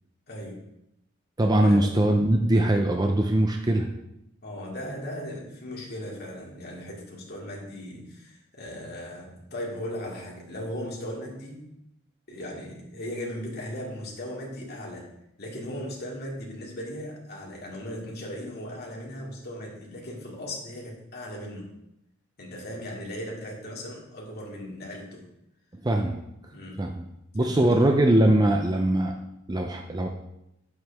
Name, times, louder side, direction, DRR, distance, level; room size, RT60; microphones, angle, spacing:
voice 1, 0.3-0.7 1.6-1.9 4.4-11.7 12.3-15.1 15.4-21.8 22.4-25.3 26.5-27.0 27.4-28.0, equal, 50° left, -2 dB, 2.4 m, -37 dB
voice 2, 1.4-3.9 25.8-26.2 26.8-27.0 27.3-29.1 29.5-30.1, right 1 dB, 20° right, 3 dB, 0.6 m, -21 dB
9.4 x 7.9 x 3.5 m, 0.84 s
head